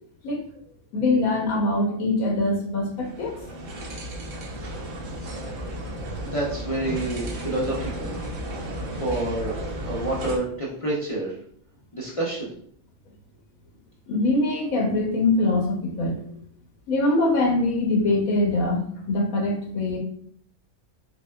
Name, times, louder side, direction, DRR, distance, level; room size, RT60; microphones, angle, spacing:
voice 1, 0.9-3.4 8.8-8.9 14.1-16.2 16.9-20.0, left 2 dB, 75° left, 1 dB, 1.3 m, -23 dB
sound 1, 3.0-10.4, right 1 dB, 65° right, 1.1 m, -34 dB
voice 2, 6.2-8.2 8.9-9.6 9.8-11.3 11.9-12.5, right 2 dB, 45° left, -4 dB, 0.4 m, -28 dB
6.1 x 2.2 x 2.3 m, 0.63 s
omnidirectional pair, 1.5 m